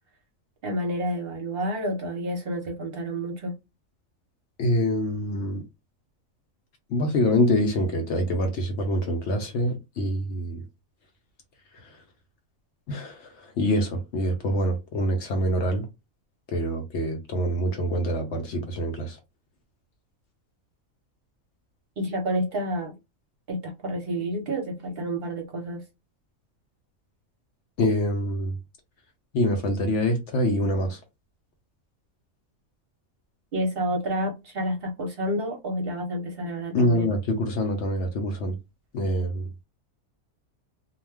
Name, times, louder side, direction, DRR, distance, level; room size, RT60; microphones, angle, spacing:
voice 1, 0.6-3.5 22.0-22.9 23.5-25.8 33.5-37.1, equal, 50° right, 0.8 m, -29 dB
voice 2, 4.6-5.6 6.9-10.6 12.9-13.2 13.6-15.8 16.5-19.2 27.8-28.5 29.3-31.0 36.7-38.6 38.9-39.4, left 1 dB, 65° left, 0.8 m, -25 dB
2.4 x 2.2 x 3.2 m
omnidirectional pair, 1.4 m